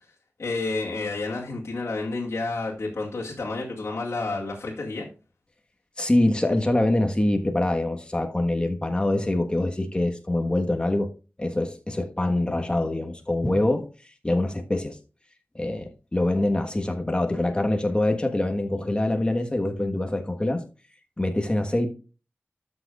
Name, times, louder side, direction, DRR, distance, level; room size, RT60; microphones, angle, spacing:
voice 1, 0.4-5.1, left 3 dB, 70° left, 2.1 m, -30 dB
voice 2, 6.0-11.1 11.4-13.9 14.2-15.0 15.5-20.6 21.2-21.9, left 1 dB, 20° left, 1.4 m, -24 dB
12.5 x 6.3 x 2.4 m
wide cardioid pair, 100°, 5 cm